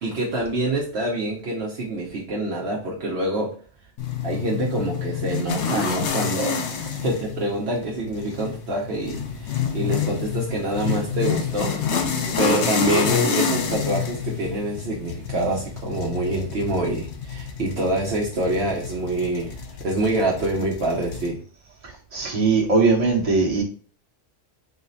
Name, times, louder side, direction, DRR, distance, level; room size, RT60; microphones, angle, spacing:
voice 1, 0.0-3.5 4.2-11.7 12.4-21.4, right 1 dB, 60° right, -4 dB, 1.0 m, -26 dB
sound 1, 4.0-21.3, left 6 dB, 65° left, 0.9 m, -28 dB
voice 2, 22.1-23.6, right 4 dB, 30° right, -4 dB, 1.1 m, -19 dB
4.0 x 2.0 x 3.9 m, 0.41 s
omnidirectional pair, 1.3 m